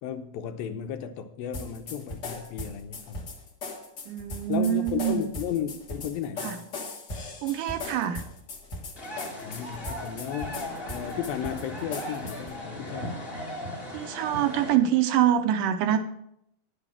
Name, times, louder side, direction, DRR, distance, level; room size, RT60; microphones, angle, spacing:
voice 1, 0.0-3.2 4.5-6.6 9.4-13.2, left 9 dB, 80° left, 2.5 m, -34 dB
sound 1, 1.5-12.6, left 3 dB, 50° left, 1.2 m, -39 dB
voice 2, 4.1-5.3 6.4-6.6 7.4-8.2 13.9-16.0, right 10 dB, 75° right, 2.1 m, -25 dB
sound 2, 9.0-14.7, equal, 25° left, 1.3 m, -37 dB
10.5 x 7.0 x 7.2 m
omnidirectional pair, 4.2 m